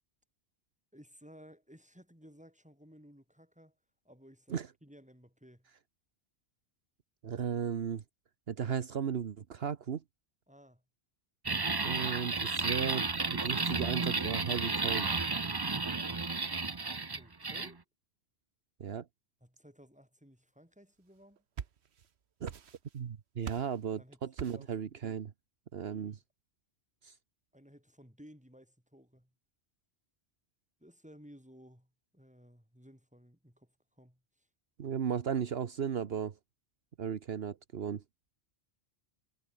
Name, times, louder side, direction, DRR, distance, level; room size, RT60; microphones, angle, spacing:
voice 1, 0.9-3.8 4.1-5.7 10.5-10.8 17.1-17.8 19.4-21.4 24.0-24.7 25.9-26.2 27.5-29.3 30.8-34.5, equal, 5° right, 6.8 m, -57 dB
voice 2, 7.2-8.0 8.5-10.0 11.8-15.1 18.8-19.1 22.4-22.5 22.9-25.3 25.7-26.1 27.0-27.1 34.8-36.3 37.0-38.0, right 7 dB, 70° right, 1.2 m, -35 dB
sound 1, 11.5-17.7, right 3 dB, 25° right, 0.8 m, -33 dB
sound 2, 21.2-22.1 22.4-23.1 23.4-23.8 24.4-24.8, right 8 dB, 85° right, 1.3 m, -43 dB
omnidirectional pair, 1.1 m